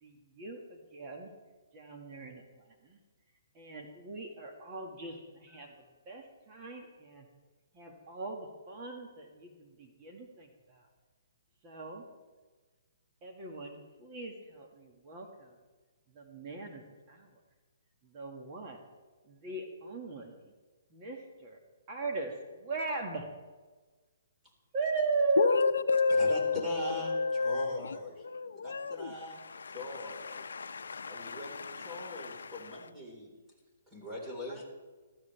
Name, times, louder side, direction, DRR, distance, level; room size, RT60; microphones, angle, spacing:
voice 1, 0.0-1.3 1.7-3.0 3.5-5.7 6.1-7.3 7.7-10.8 11.6-12.1 13.2-15.6 16.1-17.4 18.0-18.8 19.2-20.4 20.9-21.6 21.9-23.3 24.7-25.7 30.2-30.5 34.5-34.6, right 3 dB, 25° right, 1.8 m, -38 dB
voice 2, 25.4-32.8, left 4 dB, 90° left, 0.6 m, -32 dB
voice 3, 26.1-28.2 28.5-29.4 29.7-30.4 31.1-33.3 33.9-34.6, left 1 dB, 10° right, 4.2 m, -41 dB
19.0 x 14.0 x 3.4 m
hypercardioid pair, 160°, 0 cm